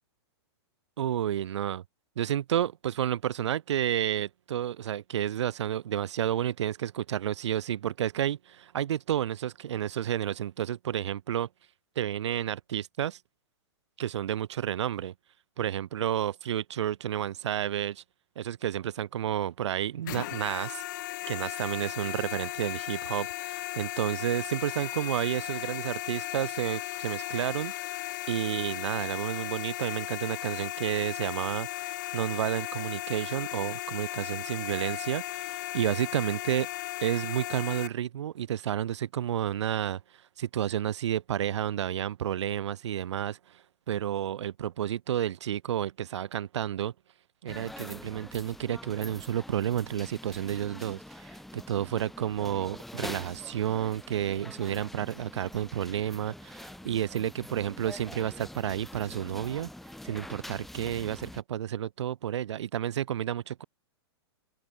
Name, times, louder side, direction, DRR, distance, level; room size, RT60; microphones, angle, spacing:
voice 1, 1.0-1.8 2.2-11.5 12.0-13.2 14.0-15.1 15.6-18.0 18.4-20.8 21.3-27.7 28.3-36.7 37.0-40.0 40.4-43.6 43.9-46.9 47.4-59.7 60.0-63.6, right 10 dB, 85° right, 0.6 m, -31 dB
sound 1, 20.0-37.9, left 16 dB, 45° left, 0.4 m, -36 dB
sound 2, 47.5-61.4, left 1 dB, ahead, 0.7 m, -45 dB
hypercardioid pair, 160°, 14 cm